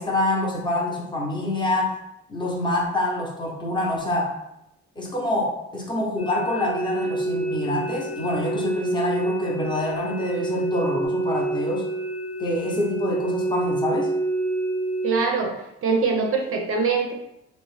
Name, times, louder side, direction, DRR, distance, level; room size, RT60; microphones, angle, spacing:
voice 1, 0.0-2.0 2.3-4.3 5.0-11.9 12.4-14.1, left 1 dB, 15° left, -2 dB, 0.7 m, -26 dB
sound 1, 6.2-15.2, right 2 dB, 55° left, 0.9 m, -27 dB
voice 2, 15.0-15.6 15.8-17.1, right 4 dB, 45° right, 2 dB, 0.5 m, -23 dB
2.9 x 2.1 x 3.1 m, 0.84 s
cardioid pair, 90°, 30 cm